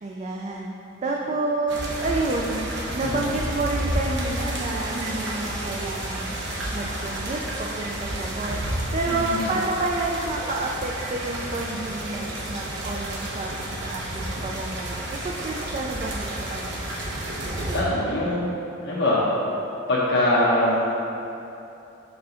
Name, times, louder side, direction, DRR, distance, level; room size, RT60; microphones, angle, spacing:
voice 1, 0.0-2.7 2.9-6.4 6.7-17.0, right 2 dB, 35° right, -1 dB, 0.4 m, -29 dB
sound 1, 1.7-17.8, right 1 dB, 60° right, 1.0 m, -31 dB
voice 2, 9.1-9.5 17.7-18.5 18.8-19.2 19.9-20.8, left 1 dB, 60° left, -7 dB, 1.0 m, -23 dB
5.5 x 3.9 x 5.7 m, 2.8 s
head